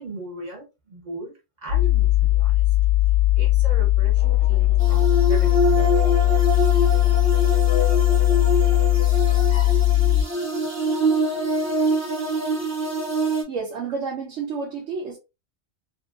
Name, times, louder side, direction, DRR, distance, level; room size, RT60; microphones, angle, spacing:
voice 1, 0.0-1.3 1.6-2.6 3.4-5.9, right 1 dB, 40° right, 0.9 m, -38 dB
sound 1, 1.7-10.2, left 16 dB, 65° right, 1.0 m, -19 dB
sound 2, 4.2-9.8, left 9 dB, 65° left, 0.7 m, -37 dB
sound 3, 4.8-13.4, right 2 dB, 20° right, 0.5 m, -25 dB
voice 2, 13.5-15.2, right 5 dB, 90° right, 1.0 m, -30 dB
2.8 x 2.6 x 2.3 m
omnidirectional pair, 1.2 m